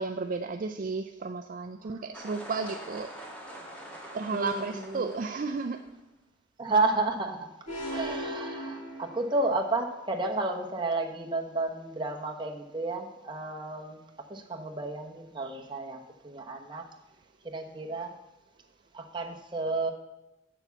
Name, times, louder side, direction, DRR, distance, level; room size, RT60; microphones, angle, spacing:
voice 1, 0.0-3.1 3.8-5.9, right 4 dB, 45° right, 6 dB, 0.4 m, -33 dB
sound 1, 2.1-5.9, right 1 dB, 5° left, 1.9 m, -45 dB
voice 2, 4.3-5.1 6.6-7.5 7.9-14.0 14.3-16.8 17.4-18.2 18.9-19.9, right 3 dB, 25° right, 1 dB, 1.1 m, -31 dB
sound 2, 7.7-9.7, equal, 40° left, 4.4 m, -37 dB
7.1 x 7.0 x 8.1 m, 0.96 s
head